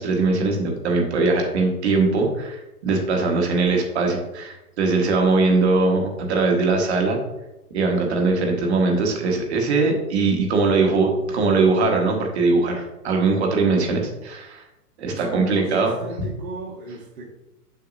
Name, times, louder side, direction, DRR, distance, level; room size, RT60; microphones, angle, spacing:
voice 1, 0.0-7.2 7.7-14.6 15.0-15.9, right 3 dB, 45° right, 1 dB, 1.5 m, -21 dB
voice 2, 15.1-17.3, right 2 dB, 60° right, -6 dB, 1.7 m, -34 dB
6.9 x 6.6 x 2.7 m, 0.95 s
hypercardioid pair, 165°, 47 cm